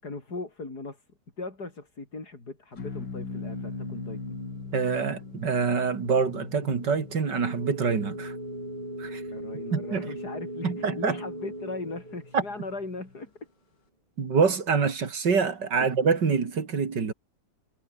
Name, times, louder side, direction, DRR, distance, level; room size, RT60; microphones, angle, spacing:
voice 1, 0.0-1.0 1.4-4.4 9.3-13.3 15.8-15.9, left 3 dB, 65° left, 5.3 m, -38 dB
sound 1, 2.8-13.3, left 4 dB, 90° left, 3.7 m, -43 dB
sound 2, 3.3-13.1, right 1 dB, 20° right, 6.1 m, -40 dB
voice 2, 4.7-8.3 9.0-9.2 9.7-10.1 10.6-11.2 12.3-12.4 14.2-17.1, right 5 dB, 90° right, 3.1 m, -25 dB
omnidirectional pair, 1.8 m